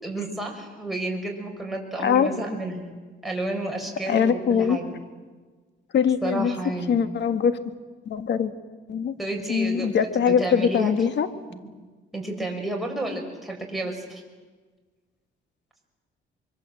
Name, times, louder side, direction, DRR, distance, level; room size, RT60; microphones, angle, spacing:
voice 1, 0.0-3.0 3.2-4.9 6.2-7.0 9.2-10.9 11.5-11.6 12.1-14.2, right 2 dB, ahead, 0 dB, 5.9 m, -31 dB
voice 2, 2.0-2.3 4.1-4.8 5.9-6.5 6.9-7.7 8.0-8.5 8.9-9.1 9.5-11.3, left 7 dB, 60° left, 10 dB, 1.8 m, -22 dB
25.5 x 23.0 x 7.8 m, 1.3 s
cardioid pair, 90°, 20 cm